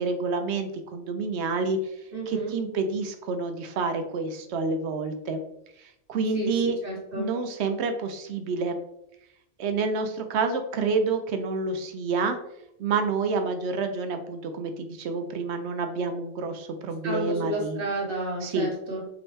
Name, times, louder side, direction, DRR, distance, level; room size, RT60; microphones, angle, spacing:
voice 1, 0.0-1.8 2.3-5.4 5.8-6.8 7.2-8.8 9.6-12.4 12.8-17.8 18.4-18.7, right 4 dB, 75° right, 7 dB, 0.8 m, -28 dB
voice 2, 2.1-2.5 6.3-7.3 17.0-19.0, right 1 dB, 50° right, -3 dB, 1.7 m, -31 dB
4.9 x 3.0 x 3.1 m, 0.80 s
omnidirectional pair, 1.2 m